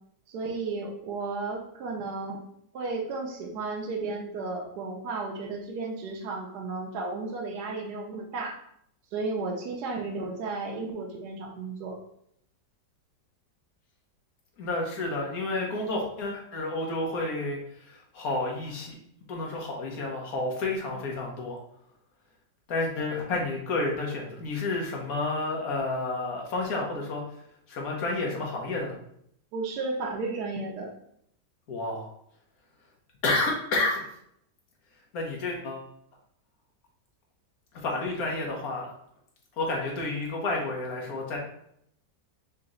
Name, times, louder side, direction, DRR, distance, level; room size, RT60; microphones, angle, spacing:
voice 1, 0.3-2.4 2.7-8.6 9.1-12.0 29.5-30.9, right 3 dB, 70° right, 0 dB, 1.3 m, -33 dB
voice 2, 14.6-19.0 19.3-21.6 22.7-27.2 27.7-28.9 31.7-32.1 33.2-34.0 35.1-35.9 37.7-38.9 39.6-41.4, left 2 dB, 60° left, -1 dB, 1.5 m, -30 dB
4.1 x 2.9 x 3.8 m, 0.71 s
omnidirectional pair, 1.8 m